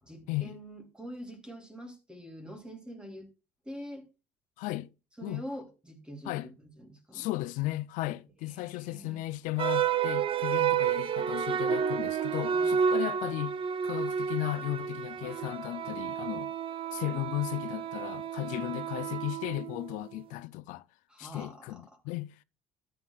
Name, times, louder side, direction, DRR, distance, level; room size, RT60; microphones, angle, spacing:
voice 1, 0.0-3.3 3.6-4.1 5.2-7.3 8.5-9.2 12.5-12.7 18.6-18.7 21.1-22.0, equal, 5° right, 2.8 m, -45 dB
voice 2, 4.6-4.9 5.2-5.4 6.3-6.5 7.1-13.6 13.8-16.5 16.9-20.8 21.2-22.4, left 17 dB, 85° left, 0.5 m, -35 dB
sound 1, 9.6-20.0, right 7 dB, 45° right, 0.7 m, -31 dB
13.0 x 9.4 x 2.3 m
cardioid pair, 115°, 13 cm